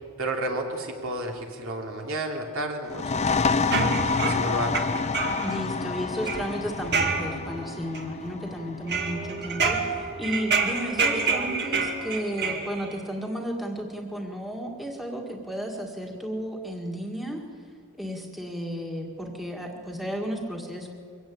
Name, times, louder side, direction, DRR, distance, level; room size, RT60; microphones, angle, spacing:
voice 1, 0.2-3.6 4.2-4.8, right 1 dB, 65° right, 1 dB, 3.0 m, -31 dB
sound 1, 2.9-10.3, left 4 dB, 30° left, 0.5 m, -29 dB
sound 2, 3.7-5.6 6.0-7.6 7.9-8.5 8.9-12.9, right 4 dB, 50° right, 2.2 m, -28 dB
voice 2, 5.4-17.4 18.0-20.9, equal, ahead, 0 dB, 1.9 m, -33 dB
23.0 x 16.5 x 8.8 m, 2.3 s
head